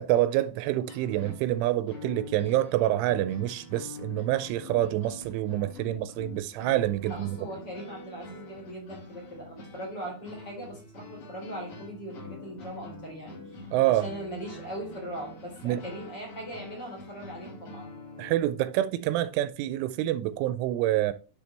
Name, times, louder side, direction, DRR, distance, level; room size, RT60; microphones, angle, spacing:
voice 1, 0.0-7.3 13.7-14.1 15.6-15.8 18.2-21.1, right 14 dB, 85° right, 3.0 m, -27 dB
sound 1, 0.8-18.4, left 2 dB, 45° left, 2.0 m, -45 dB
voice 2, 7.1-18.0, equal, 25° left, 3.4 m, -40 dB
10.5 x 6.7 x 3.3 m
omnidirectional pair, 5.5 m